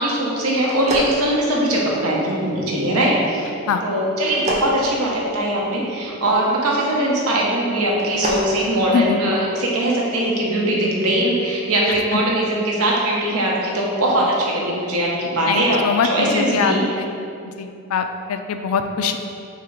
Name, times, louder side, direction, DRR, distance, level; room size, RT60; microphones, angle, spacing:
voice 1, 0.0-3.5 3.8-15.8 16.1-16.8, right 1 dB, 85° right, -3 dB, 0.8 m, -21 dB
sound 1, 0.6-2.0 4.2-5.8 7.8-8.5, right 1 dB, 30° right, 0.4 m, -28 dB
voice 2, 11.9-12.2 15.5-17.1 17.6-19.2, left 6 dB, 75° left, 7 dB, 0.3 m, -23 dB
3.7 x 2.8 x 4.5 m, 2.6 s
head